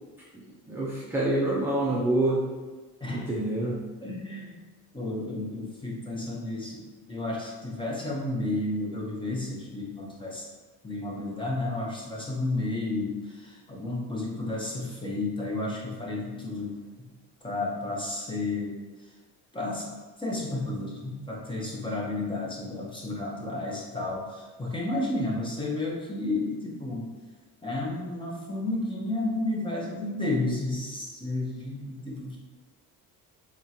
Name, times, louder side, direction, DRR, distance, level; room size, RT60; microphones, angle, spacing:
voice 1, 0.7-2.4 3.1-3.8, right 1 dB, 5° right, -6 dB, 0.4 m, -26 dB
voice 2, 4.0-4.5 4.9-6.8 7.1-10.5 10.8-16.7 17.4-18.8 19.5-19.9 20.2-27.1 27.6-32.4, left 2 dB, 15° left, -3 dB, 0.8 m, -32 dB
3.6 x 3.6 x 2.8 m, 1.3 s
cardioid pair, 140°, 35 cm